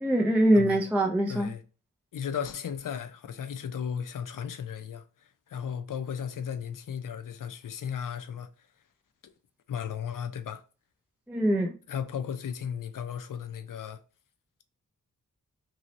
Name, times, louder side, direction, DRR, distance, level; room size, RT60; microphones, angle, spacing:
voice 1, 0.0-1.5 11.3-11.7, right 1 dB, 5° right, 0.3 m, -23 dB
voice 2, 1.3-1.6 2.1-5.0 5.5-8.5 9.7-10.6 11.9-14.0, left 8 dB, 75° left, 0.5 m, -35 dB
3.0 x 2.7 x 3.0 m
wide cardioid pair, 120°, 33 cm